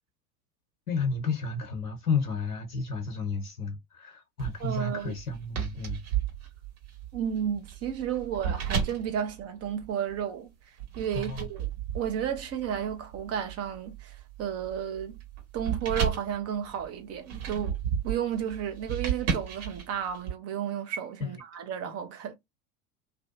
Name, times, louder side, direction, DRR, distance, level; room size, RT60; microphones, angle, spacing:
voice 1, 0.9-6.0 11.1-11.4 21.2-21.3, left 4 dB, 85° left, 0.8 m, -32 dB
sound 1, 4.4-10.2 10.8-20.3, right 7 dB, 50° right, 1.5 m, -34 dB
voice 2, 4.6-5.2 7.1-10.5 11.0-11.7 11.9-15.2 15.5-17.8 18.0-22.3, right 8 dB, 35° right, 0.8 m, -32 dB
2.6 x 2.2 x 2.5 m
figure-of-eight pair, 80°, 44 cm